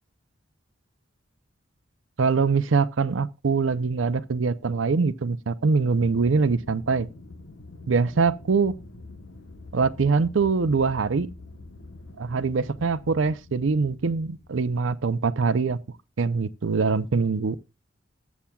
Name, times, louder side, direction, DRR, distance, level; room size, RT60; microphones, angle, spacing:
voice 1, 2.2-7.1 7.9-8.7 9.7-11.3 12.2-15.8 16.2-17.6, right 4 dB, 85° right, 0.6 m, -23 dB
Aircraft, 5.9-15.3, left 2 dB, 85° left, 1.2 m, -45 dB
20.0 x 7.2 x 2.3 m
head